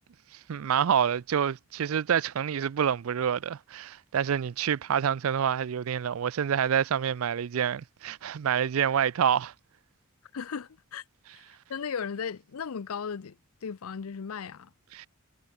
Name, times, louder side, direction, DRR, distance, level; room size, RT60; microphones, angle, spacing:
voice 1, 0.3-9.5 14.9-15.1, right 8 dB, 70° right, 0.4 m, -27 dB
voice 2, 10.3-11.0 11.3-11.4 11.7-13.4 13.6-14.7, left 6 dB, 75° left, 0.5 m, -36 dB
head